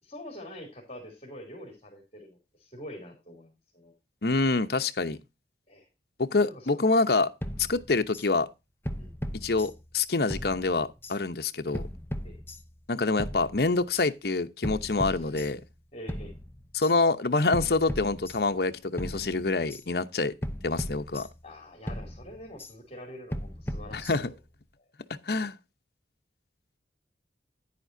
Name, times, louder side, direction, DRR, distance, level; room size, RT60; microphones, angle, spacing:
voice 1, 0.0-3.9 5.7-5.9 6.4-6.8 9.0-9.1 12.2-12.4 15.0-15.4 15.9-16.3 21.4-24.4 24.8-24.9, left 1 dB, 35° left, 3.2 m, -45 dB
voice 2, 4.2-5.2 6.2-7.3 7.6-8.5 9.3-11.9 12.9-15.6 16.7-20.3 20.6-21.3 23.9-24.3 25.3-25.5, left 3 dB, 60° left, 0.9 m, -26 dB
sound 1, 7.4-8.3 8.8-10.0 10.3-11.2 11.7-12.8 13.2-14.1 14.6-15.8 16.1-16.9 17.5-18.7 19.0-19.8 20.4-21.6 21.9-22.7 23.3-24.5, equal, 15° left, 0.8 m, -37 dB
10.5 x 9.6 x 2.7 m
head